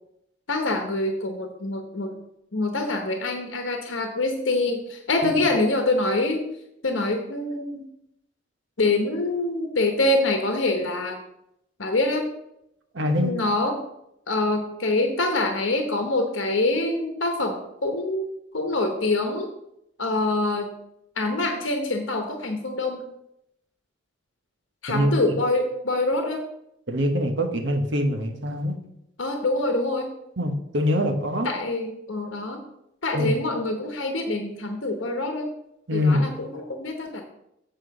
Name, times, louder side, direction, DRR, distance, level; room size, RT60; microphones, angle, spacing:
voice 1, 0.5-2.1 2.5-6.4 6.8-7.8 8.8-11.2 11.8-12.3 13.2-13.8 14.3-19.5 20.0-20.7 21.2-23.1 24.8-26.4 29.2-30.1 31.4-32.6 33.0-35.5 35.9-37.2, left 2 dB, 80° left, 4 dB, 1.0 m, -25 dB
voice 2, 12.9-13.3 24.9-25.1 26.9-28.8 30.4-31.5 33.1-33.4 35.9-36.2, left 1 dB, 65° right, 5 dB, 1.2 m, -24 dB
7.9 x 4.5 x 6.4 m, 0.80 s
head